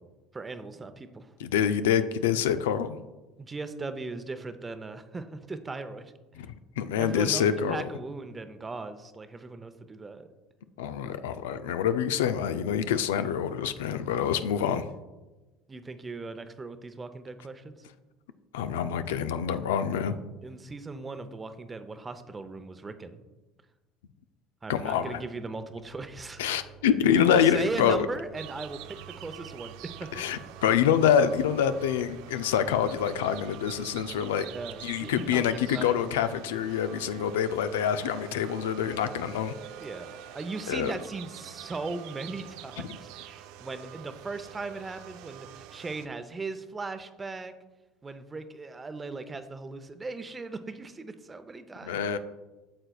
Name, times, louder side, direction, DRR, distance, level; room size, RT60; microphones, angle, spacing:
voice 1, 0.3-1.3 3.4-6.1 7.0-10.3 14.7-14.8 15.7-17.7 20.4-23.2 24.6-26.4 27.1-30.2 34.4-35.5 35.7-35.9 39.8-47.5 48.0-52.0, right 3 dB, 25° right, 10 dB, 0.6 m, -38 dB
voice 2, 1.4-3.0 6.4-6.5 6.8-7.9 10.8-14.9 18.5-20.2 24.7-25.2 26.4-28.1 30.1-34.5 34.8-39.6 40.7-40.9 51.8-52.2, left 8 dB, 90° left, 11 dB, 0.3 m, -26 dB
sound 1, 25.7-35.8, right 8 dB, 45° left, 2.2 m, -52 dB
sound 2, 28.3-46.1, right 11 dB, 75° right, 0.4 m, -46 dB
8.8 x 6.6 x 2.3 m, 1.1 s
supercardioid pair, 85°, 0 cm